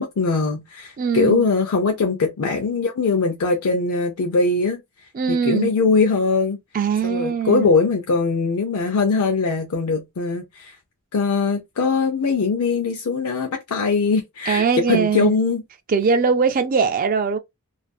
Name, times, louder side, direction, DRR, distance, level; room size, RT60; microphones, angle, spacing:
voice 1, 0.0-4.8 5.3-6.6 7.0-10.8 11.1-15.6, left 4 dB, 85° left, 0.5 m, -21 dB
voice 2, 1.0-1.4 5.1-5.7 6.7-7.7 14.5-15.3 15.9-17.4, right 5 dB, 40° right, 0.3 m, -21 dB
2.5 x 2.4 x 2.2 m
head